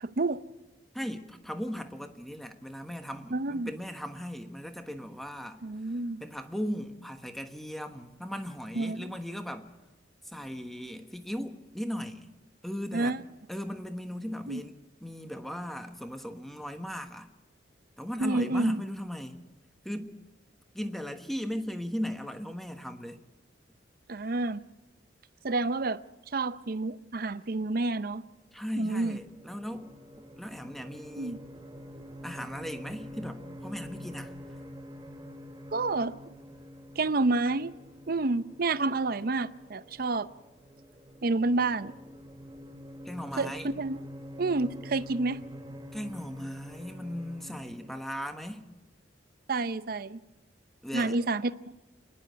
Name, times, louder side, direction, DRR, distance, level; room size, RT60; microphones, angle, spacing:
voice 1, 0.0-0.4 3.3-3.7 5.6-6.2 8.7-9.1 12.9-13.2 14.5-14.6 18.2-18.8 24.1-24.6 25.4-26.0 26.3-28.2 28.8-29.2 31.2-31.4 35.7-36.1 37.0-37.7 38.1-40.3 41.2-41.9 43.4-44.0 44.4-45.4 49.5-50.2 50.9-51.7, right 3 dB, 55° right, 14 dB, 0.6 m, -29 dB
voice 2, 0.9-5.6 6.2-9.7 10.2-12.3 12.6-13.2 13.5-17.3 18.0-19.4 19.8-20.1 20.7-23.2 28.5-29.9 30.2-31.4 32.2-34.3 43.0-43.7 45.9-48.7 50.8-51.2, equal, ahead, 7 dB, 1.2 m, -37 dB
sound 1, 28.5-48.0, equal, 20° right, 2.3 m, -47 dB
27.0 x 10.5 x 9.3 m, 1.1 s
head